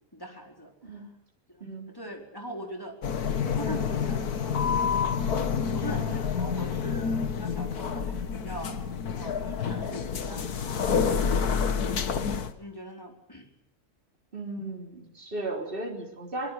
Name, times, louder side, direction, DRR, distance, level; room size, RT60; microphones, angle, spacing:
voice 1, 0.1-0.7 1.5-1.6 1.9-3.0 3.4-4.9 5.7-8.8 9.1-10.4 12.6-13.5, equal, 15° left, 2 dB, 4.6 m, -41 dB
sound 1, 3.0-12.5, left 6 dB, 75° left, 1.9 m, -28 dB
voice 2, 5.8-6.1 14.3-16.5, right 2 dB, 35° right, 1 dB, 4.1 m, -36 dB
23.0 x 21.5 x 9.7 m, 0.73 s
omnidirectional pair, 1.7 m